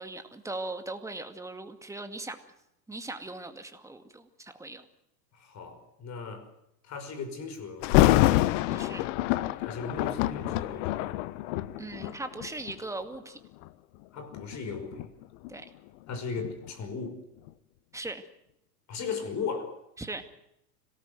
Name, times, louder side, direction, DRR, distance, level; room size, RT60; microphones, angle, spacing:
voice 1, 0.0-2.4 2.9-4.8 8.7-9.1 11.8-13.4 15.5-15.7 17.9-18.3 20.0-20.2, right 2 dB, 5° right, 2.2 m, -39 dB
voice 2, 5.3-6.5 6.8-8.2 9.6-11.1 14.1-15.1 16.1-17.2 18.9-19.8, left 5 dB, 35° left, 5.6 m, -37 dB
Thunder, 7.8-12.8 13.5-13.7 14.3-17.1 17.5-17.6, left 16 dB, 50° left, 1.1 m, -26 dB
25.5 x 18.5 x 8.0 m
hypercardioid pair, 105°, 49 cm